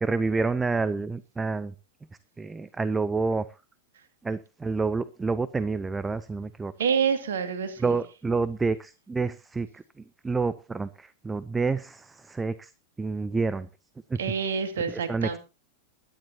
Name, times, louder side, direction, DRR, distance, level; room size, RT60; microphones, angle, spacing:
voice 1, 0.0-1.7 2.4-3.5 4.2-6.7 7.8-12.7 13.0-13.7 14.1-14.2 14.9-15.4, right 4 dB, 10° right, 17 dB, 0.7 m, -28 dB
voice 2, 6.8-8.0 14.2-15.4, right 6 dB, 65° right, 9 dB, 2.3 m, -27 dB
22.0 x 10.5 x 2.9 m, 0.29 s
figure-of-eight pair, 90°, 0 cm